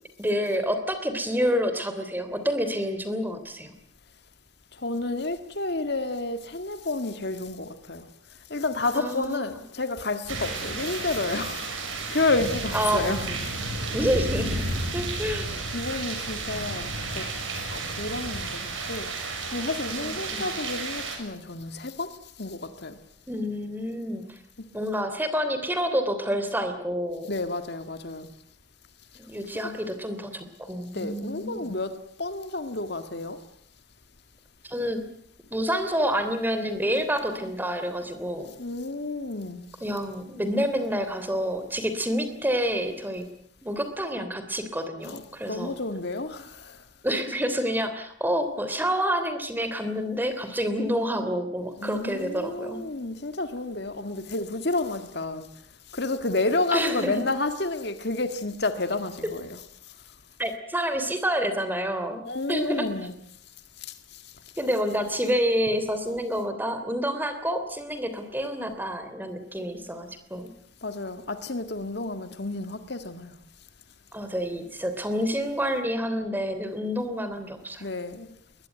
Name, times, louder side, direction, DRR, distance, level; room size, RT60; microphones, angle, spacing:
voice 1, 0.2-3.7 8.9-9.5 12.7-13.5 13.9-14.7 14.9-15.6 20.0-20.5 23.3-24.2 24.7-27.3 29.1-31.7 34.6-35.0 35.5-38.5 39.8-43.2 43.6-45.8 47.0-52.8 56.7-57.2 60.4-62.2 62.5-62.9 64.6-70.5 74.1-77.9, equal, 10° right, 3.2 m, -28 dB
voice 2, 4.8-8.1 8.5-11.7 12.1-13.3 15.7-17.3 17.7-19.1 19.5-23.0 24.6-24.7 27.3-28.3 30.9-33.4 38.6-39.7 45.0-45.2 45.5-46.8 51.8-55.5 55.9-59.6 62.2-63.1 63.8-63.9 70.8-73.3 77.8-78.3, left 2 dB, 60° left, 1.8 m, -30 dB
sound 1, 10.3-21.2, right 3 dB, 90° right, 7.0 m, -32 dB
21.5 x 21.0 x 9.3 m
head